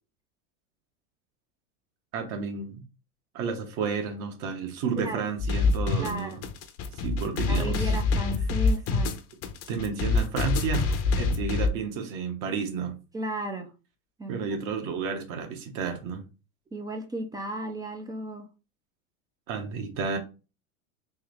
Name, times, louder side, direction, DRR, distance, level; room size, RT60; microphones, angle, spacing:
voice 1, 2.1-2.8 3.3-6.4 7.0-7.9 9.7-13.0 14.3-16.2 19.5-20.2, right 5 dB, 50° right, 1.3 m, -31 dB
sound 1, 5.4-11.7, left 4 dB, 35° left, 0.7 m, -26 dB
voice 2, 6.0-6.4 7.5-9.1 13.1-13.7 14.2-14.4 16.7-18.5, right 1 dB, 10° right, 0.4 m, -34 dB
3.7 x 3.0 x 3.3 m
hypercardioid pair, 115°, 43 cm